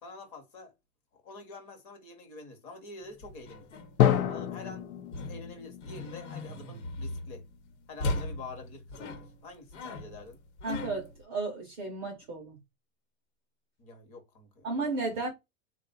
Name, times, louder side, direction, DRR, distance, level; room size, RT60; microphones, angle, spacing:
voice 1, 0.0-0.7 1.1-3.7 4.3-7.4 7.9-10.4 13.8-14.7, left 3 dB, 25° left, 0.8 m, -47 dB
sound 1, 3.1-4.6 5.1-7.6 8.0-11.2, left 2 dB, 55° left, 1.1 m, -38 dB
Drum, 4.0-7.7, left 10 dB, 85° left, 0.8 m, -30 dB
voice 2, 10.6-12.6 14.6-15.3, right 3 dB, 20° right, 0.5 m, -33 dB
3.7 x 2.3 x 3.8 m
supercardioid pair, 165°, 42 cm